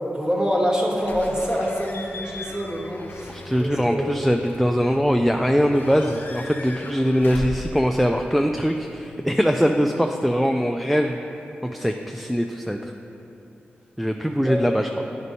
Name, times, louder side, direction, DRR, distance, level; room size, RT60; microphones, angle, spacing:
voice 1, 0.1-3.3 3.6-4.1 14.4-14.6, equal, 15° right, -2 dB, 1.2 m, -25 dB
Slam / Squeak / Alarm, 1.0-8.9, left 2 dB, 55° left, 0.6 m, -39 dB
voice 2, 3.3-11.2 11.7-12.8 14.0-14.9, equal, ahead, 3 dB, 0.3 m, -22 dB
9.4 x 5.1 x 2.8 m, 2.8 s
cardioid pair, 55°, 4 cm